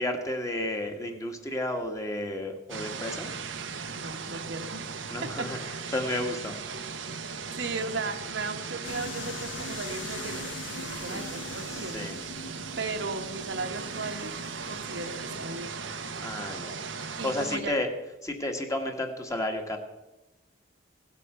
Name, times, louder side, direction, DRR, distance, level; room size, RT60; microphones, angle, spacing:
voice 1, 0.0-3.3 5.1-6.5 11.1-11.2 11.7-12.1 16.2-17.9 18.2-19.8, left 1 dB, 15° left, 4 dB, 1.6 m, -32 dB
sound 1, 2.7-17.6, right 5 dB, 90° right, 1.2 m, -38 dB
voice 2, 3.9-5.0 5.4-5.5 7.5-12.1 12.8-14.3 14.7-15.9 17.2-17.7, right 3 dB, 70° right, 5 dB, 1.4 m, -36 dB
sound 2, 8.8-15.8, left 5 dB, 70° left, 0.7 m, -43 dB
17.0 x 8.4 x 6.9 m, 1.0 s
head